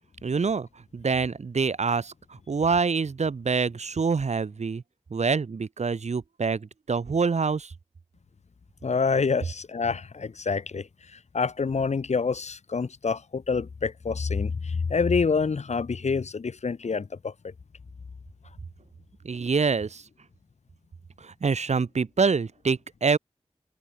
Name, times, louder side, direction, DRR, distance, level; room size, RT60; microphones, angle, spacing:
voice 1, 0.2-0.7 0.9-4.8 5.1-7.7 19.2-20.0 21.2-23.2, right 5 dB, 90° right, 3.0 m, -26 dB
voice 2, 8.8-17.5, left 5 dB, 90° left, 2.7 m, -27 dB
wide cardioid pair, 60°, 11 cm